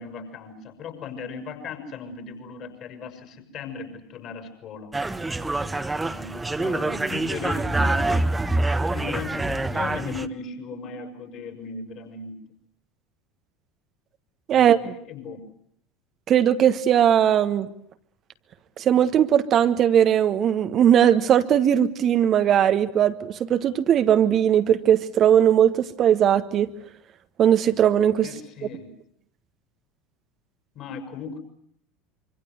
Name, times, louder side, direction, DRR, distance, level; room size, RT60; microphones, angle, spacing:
voice 1, 0.0-4.9 6.0-12.3 14.5-15.4 28.2-28.9 30.7-31.4, left 5 dB, 45° left, 6 dB, 6.1 m, -37 dB
sound 1, 4.9-10.3, right 2 dB, 10° right, 1.4 m, -25 dB
voice 2, 14.5-14.9 16.3-17.7 18.8-26.7 27.4-28.3, right 9 dB, 40° right, 10 dB, 1.4 m, -19 dB
25.5 x 25.5 x 8.1 m, 0.67 s
figure-of-eight pair, 70°, 0 cm